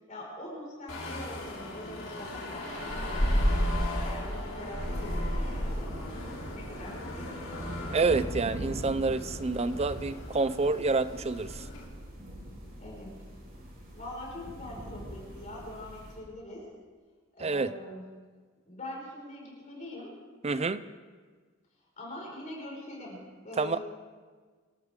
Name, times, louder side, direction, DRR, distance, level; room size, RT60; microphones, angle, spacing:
voice 1, 0.1-6.3 6.5-8.0 12.8-13.3 13.9-16.7 17.4-18.1 18.6-20.2 22.0-23.8, left 1 dB, 40° left, -3 dB, 5.4 m, -43 dB
sound 1, 0.9-11.8, equal, 75° left, 3.5 m, -34 dB
sound 2, 2.6-10.5 10.8-10.9 11.3-11.4, right 1 dB, 70° right, 4.5 m, -49 dB
sound 3, 4.8-16.1, equal, 50° right, 5.3 m, -42 dB
voice 2, 7.9-11.6 17.4-17.7 20.4-20.8 23.6-23.8, right 3 dB, 30° right, 14 dB, 0.5 m, -28 dB
26.5 x 13.0 x 3.7 m, 1.5 s
head